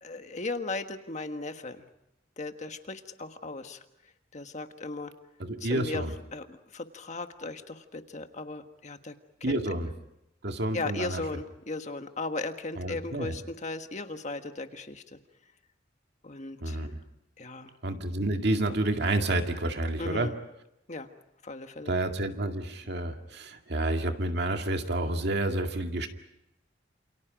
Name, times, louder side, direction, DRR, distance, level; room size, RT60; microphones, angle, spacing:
voice 1, 0.0-1.8 2.4-3.8 4.3-5.1 5.6-6.0 6.3-9.1 9.4-9.6 10.7-15.2 16.2-16.9 17.4-17.7 20.0-20.4 20.9-21.1 21.4-21.9, left 3 dB, 40° left, 7 dB, 1.5 m, -37 dB
voice 2, 5.4-6.1 9.4-9.9 10.4-11.2 12.8-13.3 16.6-17.0 17.8-20.3 21.9-26.1, right 1 dB, 60° right, 4 dB, 2.1 m, -29 dB
28.5 x 28.0 x 5.2 m, 0.85 s
head